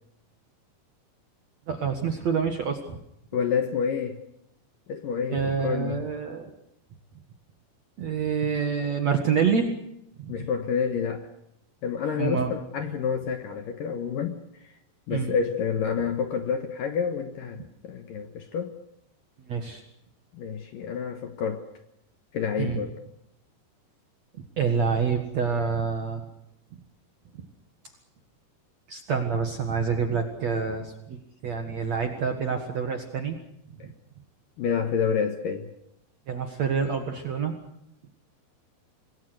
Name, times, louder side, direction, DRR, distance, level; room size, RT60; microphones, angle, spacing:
voice 1, 1.7-3.0 5.3-6.5 8.0-9.7 10.3-10.5 12.2-12.5 15.1-15.3 19.5-19.8 22.6-22.8 24.6-26.3 28.9-33.4 33.8-33.9 36.3-37.5, right 6 dB, 55° right, 5 dB, 2.0 m, -27 dB
voice 2, 3.3-4.2 4.9-6.0 10.3-11.3 11.8-14.4 15.1-18.7 20.3-21.7 22.3-23.0 34.6-35.7, left 6 dB, 65° left, 7 dB, 2.3 m, -28 dB
26.5 x 21.0 x 6.5 m, 0.78 s
omnidirectional pair, 5.4 m